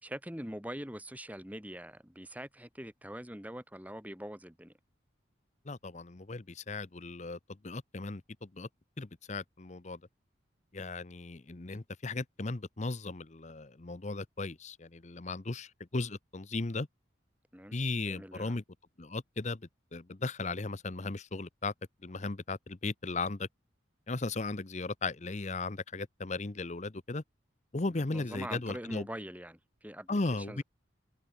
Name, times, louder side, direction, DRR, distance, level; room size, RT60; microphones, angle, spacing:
voice 1, 0.0-4.7 17.5-17.8 18.1-18.6 27.9-30.6, right 1 dB, 10° right, 3.4 m, -43 dB
voice 2, 5.7-7.4 7.6-8.7 9.0-10.0 10.7-16.9 17.7-18.6 19.0-19.6 19.9-21.7 22.0-23.5 24.1-27.2 27.7-29.1 30.1-30.6, left 3 dB, 35° left, 0.8 m, -36 dB
head